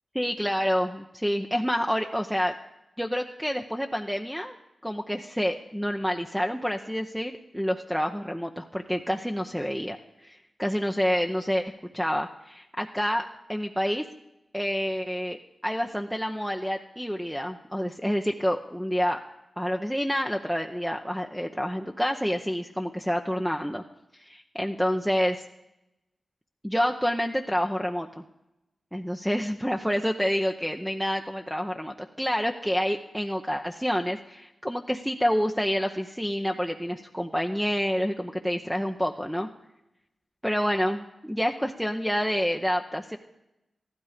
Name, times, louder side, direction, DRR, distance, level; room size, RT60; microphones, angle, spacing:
voice 1, 0.1-2.5 3.0-4.6 4.8-14.0 14.5-19.2 19.6-23.8 24.2-25.4 26.6-28.2 28.9-39.5 40.4-43.2, equal, ahead, 3 dB, 0.8 m, -28 dB
14.5 x 12.5 x 5.1 m, 0.90 s
cardioid pair, 65°, 0 cm